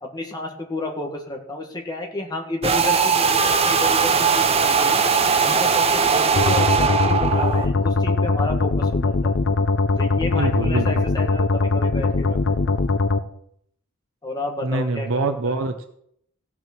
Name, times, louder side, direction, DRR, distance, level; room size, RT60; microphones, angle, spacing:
voice 1, 0.0-5.1 5.4-9.4 10.0-12.8 14.2-15.3, left 2 dB, 20° left, 1 dB, 1.9 m, -31 dB
sound 1, 2.6-7.7, right 5 dB, 30° right, 0.8 m, -19 dB
sound 2, 6.4-13.2, left 3 dB, 60° left, 0.7 m, -21 dB
voice 2, 10.3-11.0 14.6-15.8, right 3 dB, 65° right, 7 dB, 0.8 m, -25 dB
15.5 x 6.1 x 6.1 m, 0.71 s
head